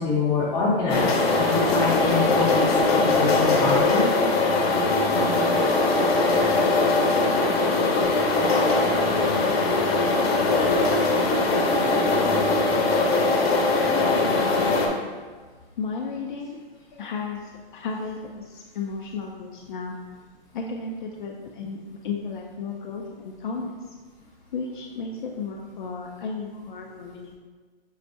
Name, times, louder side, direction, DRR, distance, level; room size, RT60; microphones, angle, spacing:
voice 1, 0.0-2.6 2.9-4.1, left 3 dB, 15° left, -7 dB, 0.9 m, -25 dB
sound 1, 0.9-14.9, left 3 dB, 85° left, 0.9 m, -21 dB
voice 2, 13.9-14.4 15.8-16.6 17.0-19.9 20.5-21.8 22.0-23.7 24.5-27.3, left 4 dB, 55° left, 0 dB, 0.5 m, -33 dB
5.5 x 3.3 x 2.6 m, 1.4 s
hypercardioid pair, 155°, 30 cm